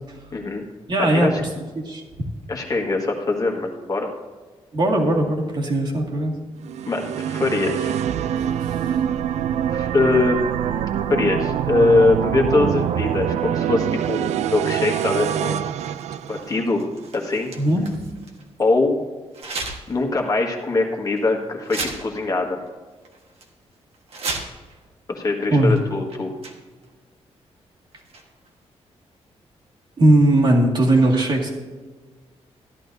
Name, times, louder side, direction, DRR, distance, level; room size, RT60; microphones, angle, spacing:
voice 1, 0.3-0.6 1.0-1.3 2.5-4.1 6.9-7.9 9.7-10.4 11.1-15.7 16.3-16.8 17.1-17.5 18.6-19.0 19.9-22.6 25.1-26.3, left 3 dB, 35° left, 1 dB, 1.7 m, -22 dB
voice 2, 0.9-1.5 1.8-2.0 4.7-6.3 8.6-9.0 17.6-18.1 25.5-25.8 30.0-31.5, right 1 dB, 45° right, -1 dB, 2.1 m, -19 dB
sound 1, 6.6-16.9, right 10 dB, 90° right, 0.4 m, -25 dB
sound 2, 14.6-18.5 19.3-20.0 20.4-20.5 21.2-21.3 21.6-22.4 22.7-22.8 23.0-23.5 23.9-24.8 25.7-25.8 26.1-26.9 27.9-28.5, right 3 dB, 65° right, 1.5 m, -35 dB
14.5 x 11.0 x 2.7 m, 1.4 s
wide cardioid pair, 140°, 11 cm